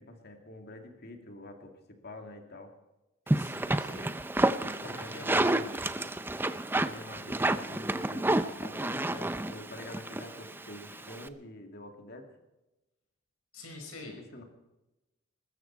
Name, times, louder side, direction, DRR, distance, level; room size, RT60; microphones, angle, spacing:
voice 1, 0.0-2.7 4.8-5.6 6.8-12.3 14.1-14.4, left 1 dB, 50° left, 4 dB, 2.5 m, -47 dB
voice 2, 3.3-4.1 4.6-5.8 13.5-14.2, left 2 dB, 85° left, 3 dB, 5.5 m, -46 dB
sound 1, 3.3-11.3, right 1 dB, 10° right, 0.5 m, -30 dB
21.0 x 13.5 x 4.7 m, 0.98 s
head